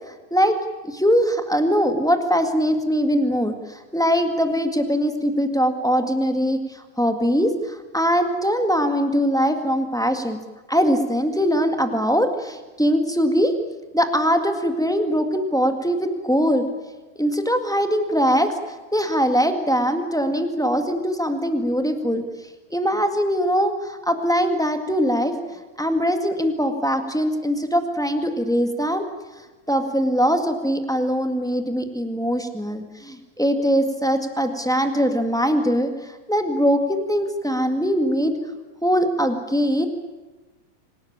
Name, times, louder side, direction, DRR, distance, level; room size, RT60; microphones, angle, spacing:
voice 1, 0.1-0.6 0.8-10.4 10.7-13.5 13.9-16.6 17.2-18.5 18.9-22.2 22.7-25.3 25.8-29.1 29.7-38.3 38.8-39.9, equal, 5° left, 6 dB, 0.6 m, -21 dB
26.5 x 19.0 x 8.9 m, 1.2 s
omnidirectional pair, 4.0 m